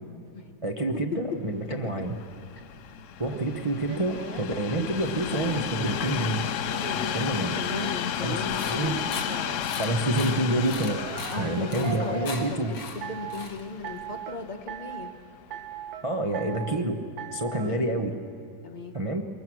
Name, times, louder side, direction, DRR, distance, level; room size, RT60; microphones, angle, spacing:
voice 1, 0.6-2.1 3.2-6.4 7.1-7.6 8.2-9.0 9.6-11.0 11.4-12.7 16.0-17.0 17.3-18.2 18.9-19.2, right 1 dB, 35° right, 3 dB, 0.5 m, -28 dB
Train, 1.7-14.9 15.6-15.7, left 9 dB, 85° left, 0.6 m, -33 dB
sound 1, 3.2-6.1 6.7-9.6 10.9-12.5 13.0-13.5 13.8-14.4 14.7-15.2 15.5-16.0 16.3-16.8 17.2-17.7, right 8 dB, 75° right, 1.6 m, -39 dB
voice 2, 6.8-7.3 7.6-9.0 11.3-15.1 17.5-17.9 18.6-18.9, left 4 dB, 25° left, 4 dB, 1.2 m, -37 dB
sound 2, 8.5-14.0, left 4 dB, 60° left, 2.3 m, -40 dB
24.0 x 21.5 x 6.2 m, 2.7 s
omnidirectional pair, 2.1 m